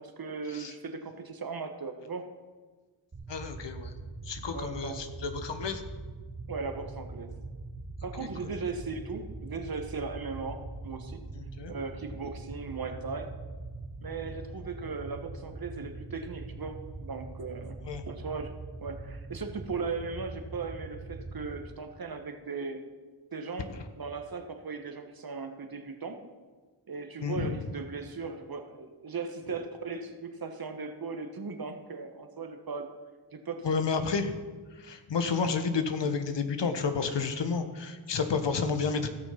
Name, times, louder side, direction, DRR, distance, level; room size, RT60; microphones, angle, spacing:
voice 1, 0.0-2.2 4.5-5.0 6.5-7.3 8.0-11.2 11.7-13.3 14.0-17.8 18.1-18.5 18.8-22.8 23.3-26.2 26.9-32.9 33.3-33.7, right 4 dB, 45° right, 6 dB, 1.5 m, -38 dB
sound 1, 3.1-21.6, right 3 dB, 25° right, 1.6 m, -42 dB
voice 2, 3.3-4.0 4.2-5.8 8.2-8.3 11.3-11.7 17.9-18.0 27.2-27.6 33.6-34.4 34.8-39.1, left 5 dB, 60° left, 8 dB, 1.3 m, -31 dB
16.0 x 6.3 x 5.9 m, 1.4 s
cardioid pair, 50°, 48 cm